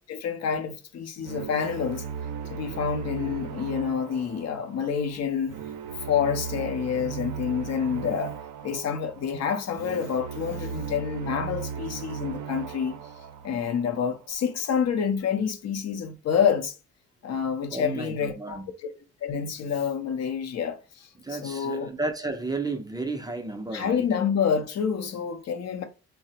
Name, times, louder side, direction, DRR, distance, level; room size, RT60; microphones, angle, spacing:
voice 1, 0.1-2.0 2.5-5.6 6.1-8.4 8.6-12.9 13.4-16.7 17.2-18.6 19.2-21.1 21.4-21.9 23.7-25.8, left 7 dB, 60° left, 0.6 m, -28 dB
sound 1, 1.2-14.3, right 7 dB, 75° right, 0.5 m, -37 dB
voice 2, 17.7-18.7 21.2-24.0, right 3 dB, 15° right, 0.4 m, -33 dB
3.2 x 2.0 x 2.7 m
cardioid pair, 90°, 30 cm